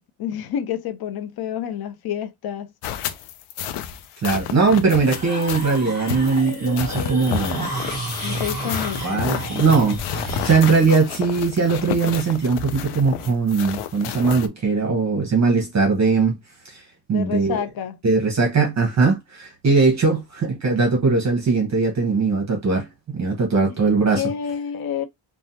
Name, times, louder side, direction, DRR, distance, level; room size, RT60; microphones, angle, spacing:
voice 1, 0.0-2.7 8.2-9.3 17.1-18.0 24.1-25.0, left 9 dB, 50° left, 0.6 m, -29 dB
sound 1, 2.8-14.5, left 9 dB, 90° left, 0.6 m, -31 dB
voice 2, 4.2-7.7 9.0-16.4 16.7-16.8 17.1-17.6 18.0-24.2, right 4 dB, 35° right, 1.0 m, -20 dB
sound 2, 5.1-10.6, right 1 dB, 20° left, 1.7 m, -31 dB
3.2 x 2.2 x 2.7 m
cardioid pair, 135°, 48 cm